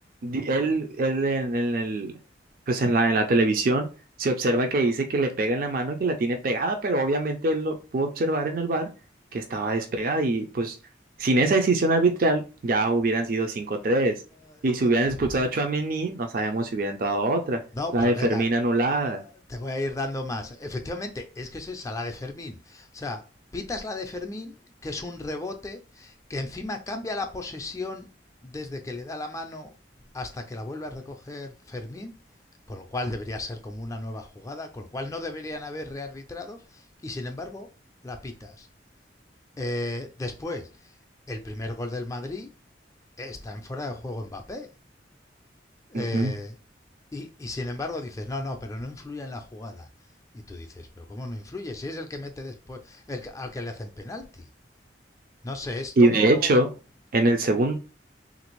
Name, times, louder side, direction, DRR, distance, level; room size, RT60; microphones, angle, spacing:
voice 1, 0.2-2.1 2.7-3.9 4.2-8.8 9.3-10.8 11.2-14.1 14.6-17.6 17.9-19.2 45.9-46.3 56.0-56.7 57.1-57.7, right 2 dB, 50° right, 0.4 m, -23 dB
voice 2, 17.7-18.4 19.5-23.2 23.5-24.5 24.8-28.1 28.4-29.7 30.1-32.1 32.7-37.7 38.0-38.7 39.6-40.7 41.3-42.5 43.2-44.7 45.9-46.5 47.1-49.9 50.3-54.5 55.4-56.6, left 2 dB, 20° left, 0.4 m, -34 dB
3.2 x 2.5 x 3.0 m
head